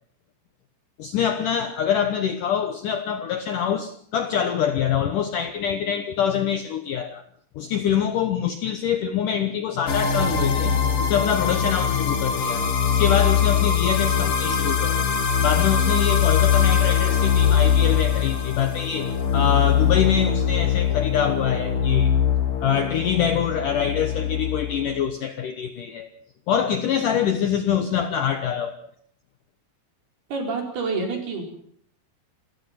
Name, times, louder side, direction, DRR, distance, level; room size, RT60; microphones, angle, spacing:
voice 1, 1.0-7.2 7.6-10.7 11.0-12.6 12.9-15.0 15.4-22.1 22.6-26.1 26.5-28.7, left 8 dB, 70° left, 8 dB, 2.1 m, -25 dB
sound 1, 9.9-25.0, left 8 dB, 50° left, 1.8 m, -22 dB
voice 2, 30.3-31.4, right 4 dB, 60° right, 2 dB, 6.4 m, -27 dB
28.0 x 16.0 x 5.9 m, 0.63 s
omnidirectional pair, 5.1 m